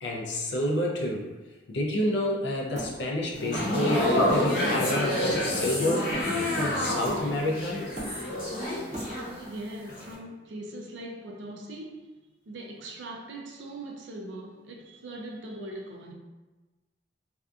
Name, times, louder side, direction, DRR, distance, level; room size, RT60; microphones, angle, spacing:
voice 1, 0.0-1.3 1.7-6.2 6.5-7.8, left 1 dB, 75° left, 0.5 m, -29 dB
Hammer, 2.8-3.9 4.3-4.6 5.0-6.6 7.1-7.5 7.8-9.5, right 1 dB, 40° right, 0.6 m, -39 dB
sound 1, 3.3-9.6 9.9-10.1, left 1 dB, 50° left, 1.0 m, -28 dB
voice 2, 9.2-12.1 12.5-16.1, right 1 dB, 85° right, 0.4 m, -41 dB
2.6 x 2.3 x 2.3 m
head